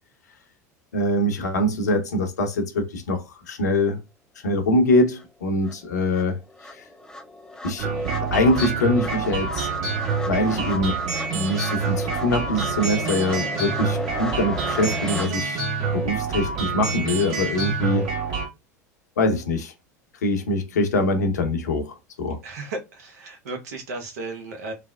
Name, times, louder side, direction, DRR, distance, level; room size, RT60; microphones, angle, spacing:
voice 1, 0.9-4.0 4.4-6.4 6.6-6.9 7.6-9.7 10.2-11.0 11.3-15.6 15.9-18.1 19.2-19.7 20.2-22.4, left 1 dB, 75° left, 0.8 m, -23 dB
sound 1, 5.2-5.3 5.6-15.3, left 1 dB, 5° left, 0.4 m, -36 dB
sound 2, 7.8-18.5, right 4 dB, 55° right, 1.5 m, -27 dB
voice 2, 22.4-24.7, right 3 dB, 70° right, 0.8 m, -34 dB
3.3 x 2.0 x 2.2 m
figure-of-eight pair, 80°, 9 cm